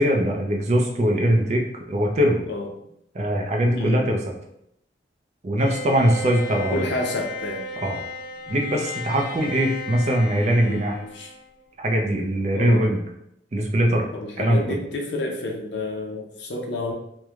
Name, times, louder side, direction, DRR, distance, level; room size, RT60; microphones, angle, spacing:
voice 1, 0.0-2.4 3.1-4.2 5.4-6.9 7.8-8.0 8.5-11.0 11.8-13.0 13.5-14.1 14.4-14.8, equal, 40° right, 1 dB, 0.4 m, -21 dB
voice 2, 3.7-4.1 6.7-7.6 10.6-11.3 12.5-12.9 14.1-16.9, left 2 dB, 75° left, 1 dB, 0.5 m, -30 dB
Bowed string instrument, 5.6-11.6, left 1 dB, 45° left, 0.9 m, -35 dB
3.0 x 2.1 x 2.4 m, 0.77 s
head